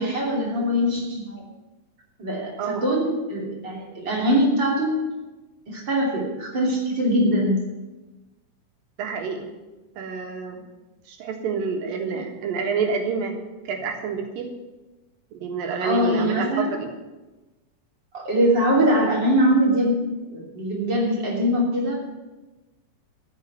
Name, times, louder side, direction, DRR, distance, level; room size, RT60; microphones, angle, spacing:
voice 1, 0.0-1.4 2.2-5.0 5.7-7.6 12.1-12.2 15.8-16.7 18.1-20.0 20.3-22.0, equal, 35° right, -2 dB, 3.5 m, -22 dB
voice 2, 9.0-9.5 10.0-10.6 11.1-13.4 13.6-14.5 15.3-16.9, right 5 dB, 85° right, 3 dB, 3.3 m, -28 dB
14.0 x 6.4 x 9.4 m, 1.1 s
omnidirectional pair, 3.9 m